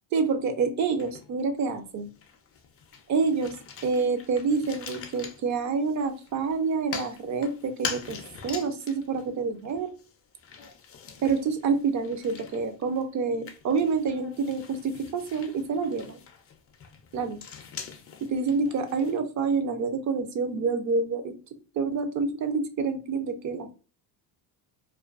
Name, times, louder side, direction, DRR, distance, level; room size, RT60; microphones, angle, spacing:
voice 1, 0.1-2.1 3.1-3.5 3.8-8.2 8.4-9.9 11.2-16.2 17.1-17.4 18.2-21.3 21.7-23.7, right 4 dB, 40° right, 8 dB, 0.5 m, -27 dB
sound 1, 1.0-1.7 2.0-19.2, left 6 dB, 35° left, 0.4 m, -43 dB
2.4 x 2.2 x 2.3 m, 0.36 s
cardioid pair, 115°, 45 cm